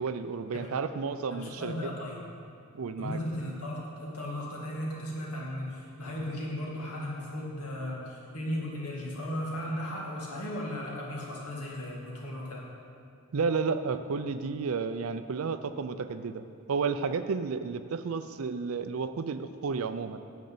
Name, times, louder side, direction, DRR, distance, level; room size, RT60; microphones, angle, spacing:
voice 1, 0.0-1.7 2.7-3.2 13.3-20.2, right 5 dB, 70° right, 11 dB, 0.4 m, -32 dB
voice 2, 1.3-2.2 3.0-12.6, left 1 dB, 85° left, -3 dB, 2.2 m, -36 dB
9.3 x 5.3 x 7.7 m, 2.3 s
head